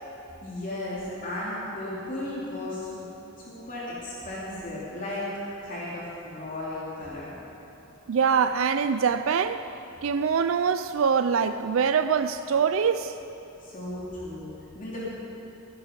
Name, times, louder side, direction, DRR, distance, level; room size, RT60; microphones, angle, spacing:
voice 1, 0.4-3.1 3.5-5.3 5.6-7.3 13.6-15.2, left 1 dB, 40° left, -7 dB, 3.1 m, -35 dB
voice 2, 8.1-9.6 10.0-13.1, right 6 dB, 75° right, 11 dB, 0.4 m, -24 dB
23.0 x 11.5 x 5.3 m, 3.0 s
head